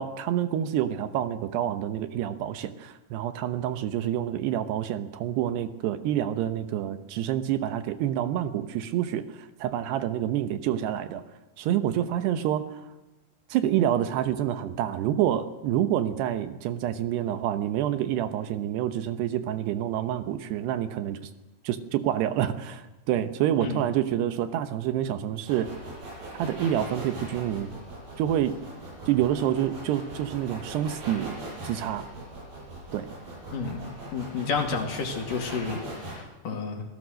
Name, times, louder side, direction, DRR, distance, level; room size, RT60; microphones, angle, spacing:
voice 1, 0.0-11.2 11.6-12.8 13.5-21.3 21.6-25.7 26.4-27.7 28.2-28.6 29.1-31.4 31.6-32.1 32.9-33.1, right 11 dB, 75° right, 10 dB, 3.0 m, -27 dB
sound 1, 25.5-36.1, right 1 dB, 60° right, 8.4 m, -40 dB
voice 2, 33.5-33.8 34.1-36.8, left 5 dB, 55° left, 3 dB, 3.6 m, -31 dB
26.0 x 17.5 x 6.5 m, 1.1 s
omnidirectional pair, 5.0 m